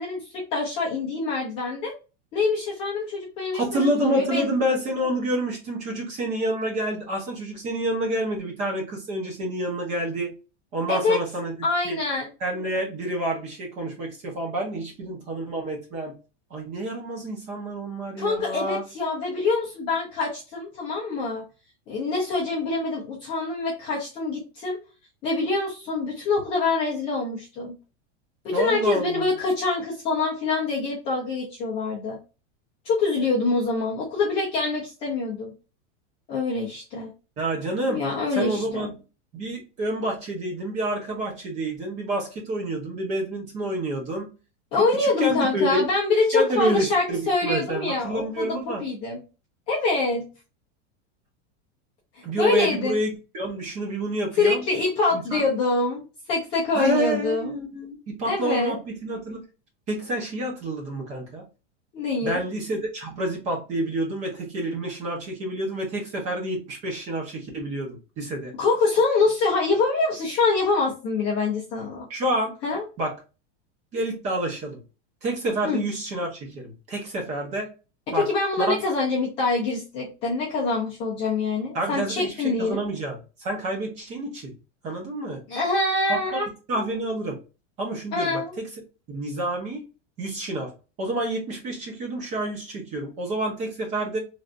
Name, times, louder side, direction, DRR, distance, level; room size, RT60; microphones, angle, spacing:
voice 1, 0.0-1.9 2.3-4.5 10.9-11.2 11.6-12.3 18.2-21.4 21.9-24.8 25.2-27.8 28.4-32.2 32.8-35.5 36.3-37.1 37.9-38.8 44.7-48.5 48.8-49.2 49.7-50.3 52.4-53.0 54.4-56.0 56.3-57.6 58.2-58.7 61.9-62.4 68.6-72.1 72.6-72.8 75.6-75.8 78.1-82.8 85.5-86.5 88.1-88.6, left 3 dB, 15° left, -6 dB, 0.5 m, -25 dB
voice 2, 3.5-10.3 10.7-11.5 11.8-12.0 12.4-16.1 16.5-18.8 28.5-29.3 37.4-38.0 38.4-38.9 39.3-44.3 45.0-45.8 46.3-48.8 52.2-54.6 55.1-55.4 56.7-59.4 59.9-61.4 62.2-68.5 72.1-72.5 73.0-73.1 73.9-74.8 75.2-77.7 78.1-78.3 78.6-78.7 81.7-84.5 84.8-85.4 86.1-87.4 87.8-88.7 89.1-89.8 90.2-90.7 91.0-94.2, right 1 dB, 20° right, 0 dB, 0.7 m, -28 dB
3.3 x 2.5 x 2.4 m, 0.31 s
supercardioid pair, 180°, 36 cm